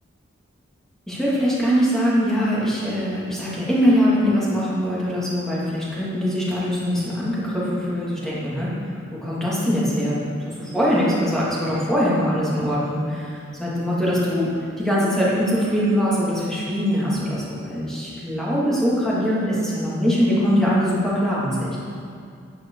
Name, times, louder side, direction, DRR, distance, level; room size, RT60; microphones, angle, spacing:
voice 1, 1.1-8.7 9.1-10.3 10.6-21.8, equal, ahead, -8 dB, 2.7 m, -22 dB
9.9 x 9.1 x 4.9 m, 2.3 s
head